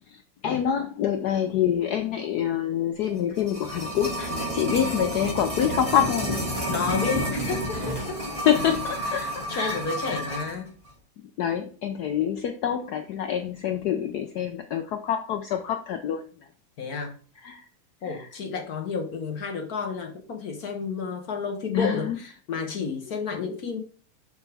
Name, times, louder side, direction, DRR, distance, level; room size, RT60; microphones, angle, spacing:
voice 1, 0.1-6.7 8.4-9.8 10.1-10.3 11.4-16.2 17.4-17.6 18.0-18.3 21.7-22.2, left 9 dB, 85° left, 7 dB, 0.8 m, -26 dB
sound 1, 3.1-10.6 10.8-10.9, equal, 15° right, 2.7 m, -30 dB
voice 2, 6.7-8.2 9.1-10.7 16.8-17.1 18.0-23.8, left 5 dB, 55° left, 4 dB, 1.1 m, -31 dB
6.5 x 6.3 x 3.4 m, 0.41 s
omnidirectional pair, 2.4 m